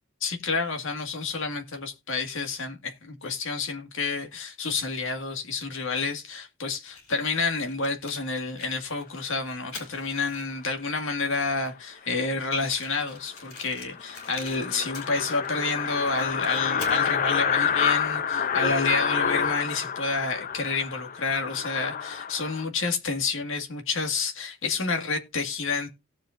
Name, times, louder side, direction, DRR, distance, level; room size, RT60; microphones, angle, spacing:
voice 1, 0.2-25.9, left 4 dB, 60° left, 1.9 m, -29 dB
Fire, 6.9-10.7 11.4-11.5 11.7-11.8 12.0-12.1 12.6-15.5 15.8-17.1, left 4 dB, 80° left, 4.7 m, -45 dB
sound 1, 12.7-12.8 13.2-13.3 13.6-13.7 13.9-22.6, left 7 dB, 40° left, 0.5 m, -28 dB
18.0 x 7.5 x 2.6 m
head